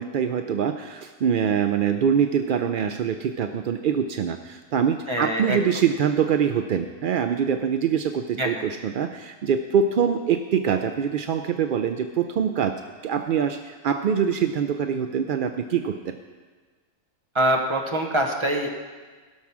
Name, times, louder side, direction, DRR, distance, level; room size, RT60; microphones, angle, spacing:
voice 1, 0.0-16.2, right 7 dB, 65° right, 7 dB, 0.5 m, -24 dB
voice 2, 5.1-5.6 8.4-8.6 17.3-18.7, right 1 dB, 25° right, 2 dB, 1.2 m, -24 dB
16.5 x 6.2 x 6.0 m, 1.4 s
omnidirectional pair, 1.4 m